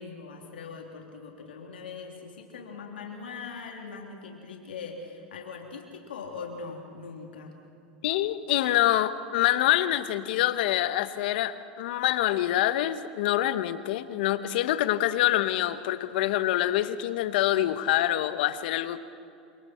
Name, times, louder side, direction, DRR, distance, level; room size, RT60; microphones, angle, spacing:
voice 1, 0.0-7.5, left 5 dB, 90° left, 1 dB, 3.1 m, -41 dB
voice 2, 8.0-19.0, left 13 dB, 70° left, 12 dB, 1.1 m, -26 dB
29.0 x 26.0 x 4.5 m, 2.7 s
hypercardioid pair, 100°, 5 cm